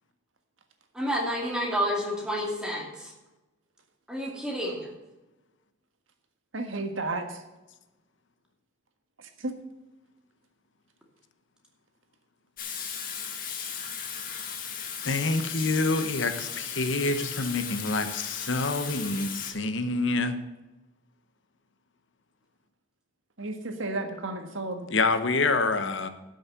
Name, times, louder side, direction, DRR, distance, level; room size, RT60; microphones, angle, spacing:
voice 1, 0.9-3.1 4.1-4.9, equal, 5° right, -1 dB, 2.4 m, -29 dB
voice 2, 6.5-7.3 9.4-9.5 23.4-24.9, right 2 dB, 90° right, 6 dB, 1.6 m, -32 dB
Water tap faucet / Sink (filling or washing), 12.6-19.5, left 7 dB, 45° left, 1.8 m, -36 dB
voice 3, 15.0-20.4 24.9-26.1, left 3 dB, 75° left, 9 dB, 1.1 m, -27 dB
12.5 x 6.5 x 7.0 m, 1.0 s
head